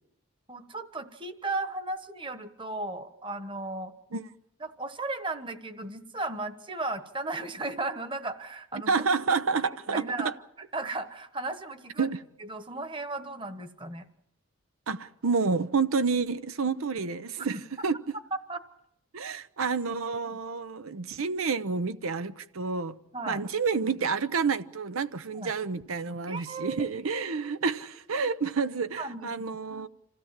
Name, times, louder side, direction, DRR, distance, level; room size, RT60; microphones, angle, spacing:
voice 1, 0.5-3.9 4.6-9.0 9.6-10.3 10.7-12.1 12.4-14.1 17.5-17.6 18.5-18.6 20.2-20.4 23.1-23.4 25.3-25.5 26.3-26.9 29.0-29.5, right 2 dB, 25° right, 1.2 m, -35 dB
voice 2, 8.9-10.3 12.0-12.2 14.9-18.0 19.1-22.9 23.3-29.9, right 5 dB, 90° right, 0.8 m, -29 dB
26.5 x 16.0 x 7.5 m
head